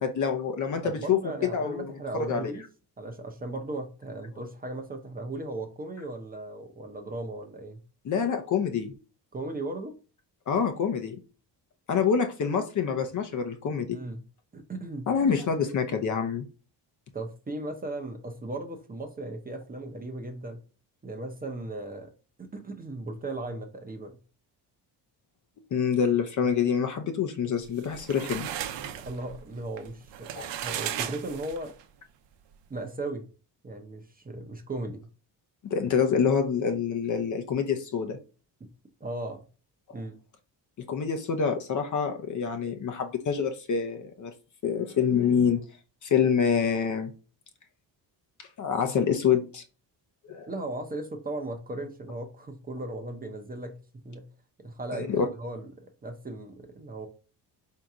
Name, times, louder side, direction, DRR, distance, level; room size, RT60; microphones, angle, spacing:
voice 1, 0.0-1.2 1.5-2.5 8.0-8.9 10.5-11.2 11.9-14.0 15.1-16.5 25.7-28.5 30.3-30.5 35.6-38.2 39.9-40.0 40.8-44.3 44.6-45.6 46.0-47.1 48.4-49.6 50.2-50.5 54.9-55.3, left 7 dB, 45° left, 0.7 m, -26 dB
voice 2, 0.8-2.6 3.0-7.8 9.3-9.9 13.9-14.2 14.5-15.1 17.1-20.6 21.0-22.1 22.4-24.2 29.0-31.7 32.7-33.3 33.6-35.1 38.6-38.7 39.0-39.4 39.9-40.1 50.5-54.3 54.6-57.1, right 2 dB, 20° right, 0.7 m, -37 dB
sound 1, 27.7-31.8, right 10 dB, 80° right, 0.7 m, -36 dB
3.8 x 2.8 x 4.7 m
cardioid pair, 145°, 42 cm